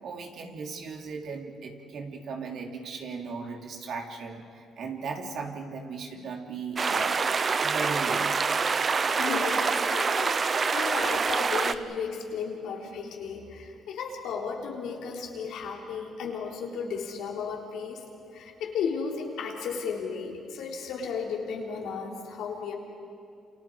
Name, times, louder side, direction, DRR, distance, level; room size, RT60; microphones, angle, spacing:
voice 1, 0.0-7.2 7.6-8.4, right 5 dB, 70° right, 2 dB, 3.0 m, -37 dB
sound 1, 6.8-11.7, right 5 dB, 40° right, 0.9 m, -26 dB
voice 2, 9.1-10.4 10.7-18.0 18.3-22.7, left 5 dB, 85° left, -1 dB, 3.7 m, -34 dB
29.0 x 28.0 x 4.8 m, 2.5 s
cardioid pair, 90°, 0 cm